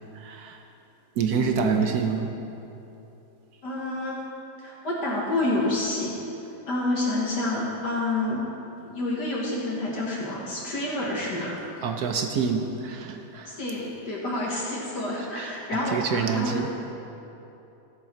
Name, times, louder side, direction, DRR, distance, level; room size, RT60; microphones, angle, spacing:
voice 1, 0.1-0.6 1.2-2.3 8.8-8.9 11.8-13.6 15.2-16.7, right 6 dB, 70° right, 4 dB, 0.9 m, -27 dB
voice 2, 1.3-1.8 3.6-4.2 4.6-6.2 6.7-8.4 8.8-11.6 13.5-16.7, left 2 dB, 55° left, -4 dB, 1.9 m, -28 dB
14.5 x 7.3 x 4.4 m, 2.9 s
omnidirectional pair, 2.3 m